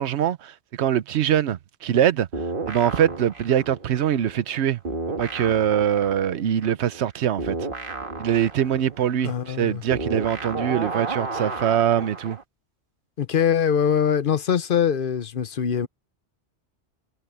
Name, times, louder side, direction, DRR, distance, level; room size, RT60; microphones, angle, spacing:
voice 1, 0.0-2.3 2.7-4.8 5.2-7.7 8.2-12.4, right 10 dB, 70° right, 1.0 m, -23 dB
sound 1, 2.3-4.6 4.8-12.4, right 3 dB, 50° right, 1.9 m, -33 dB
voice 2, 9.2-9.8 13.2-15.9, left 8 dB, 50° left, 1.0 m, -22 dB
omnidirectional pair, 1.2 m